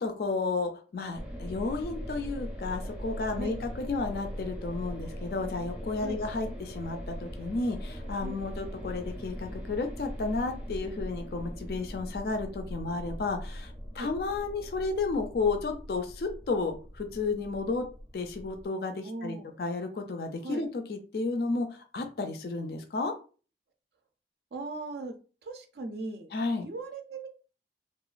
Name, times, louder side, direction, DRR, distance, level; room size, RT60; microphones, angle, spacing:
voice 1, 0.0-17.9 18.1-23.1 26.3-26.7, left 3 dB, 55° left, 6 dB, 0.4 m, -32 dB
sound 1, 1.1-18.7, equal, 5° right, 0.5 m, -40 dB
voice 2, 19.0-19.6 20.4-20.6 24.5-25.1 25.4-26.3 26.6-27.3, right 2 dB, 65° right, 6 dB, 0.4 m, -38 dB
2.9 x 2.2 x 2.4 m, 0.37 s
head